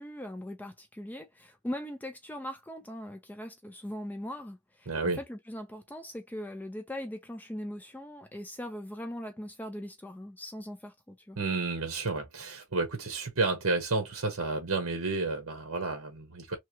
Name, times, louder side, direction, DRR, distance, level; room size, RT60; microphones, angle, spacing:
voice 1, 0.0-11.4, left 1 dB, 10° left, 0.4 m, -40 dB
voice 2, 4.9-5.2 11.4-16.6, right 3 dB, 70° right, 0.9 m, -31 dB
3.2 x 2.8 x 2.8 m
head